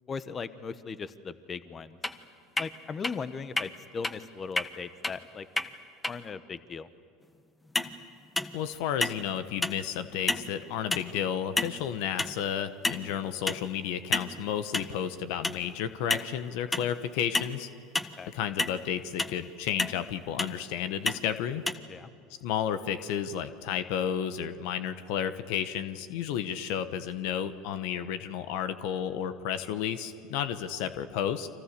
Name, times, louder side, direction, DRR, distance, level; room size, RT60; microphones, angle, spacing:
voice 1, 0.1-2.0 2.6-5.5 6.1-6.9 18.2-18.3 21.9-22.1, left 5 dB, 30° left, 13 dB, 1.2 m, -38 dB
sound 1, 2.0-2.1 2.6-2.7 3.0-3.1 3.6-3.7 4.0-4.1 4.6-4.7 5.0-5.1 5.6-5.7 6.0-6.1 7.7-7.9 8.4-8.7 9.0-9.3 9.6-9.8 10.3-10.5 10.9-11.1 11.6-11.8 12.2-12.4 12.8-13.1 13.5-13.6 14.1-14.3 14.7-14.9 15.4-15.6 16.1-16.3 16.7-16.9 17.3-17.5 17.9-18.2 18.6-18.7 19.2-19.4 19.8-20.0 20.4-20.6 21.1-21.2 21.7-21.8, left 2 dB, 15° left, 1.4 m, -29 dB
voice 2, 8.5-17.7 18.3-21.6 22.3-31.5, left 9 dB, 70° left, 11 dB, 1.3 m, -32 dB
30.0 x 25.5 x 6.9 m, 2.4 s
hypercardioid pair, 85°, 0 cm